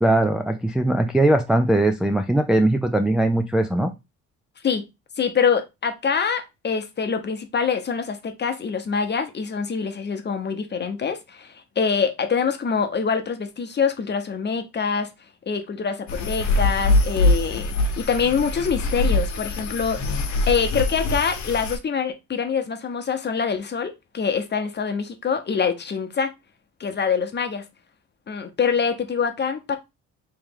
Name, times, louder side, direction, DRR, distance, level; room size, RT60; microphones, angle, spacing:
voice 1, 0.0-3.9, right 1 dB, 5° right, 0.3 m, -20 dB
voice 2, 5.2-15.1 15.5-20.2 20.5-26.3 26.8-27.7 28.3-29.8, left 6 dB, 35° left, 0.8 m, -25 dB
sound 1, 16.1-21.8, left 2 dB, 70° left, 0.9 m, -23 dB
3.1 x 3.0 x 3.5 m
cardioid pair, 90°, 30 cm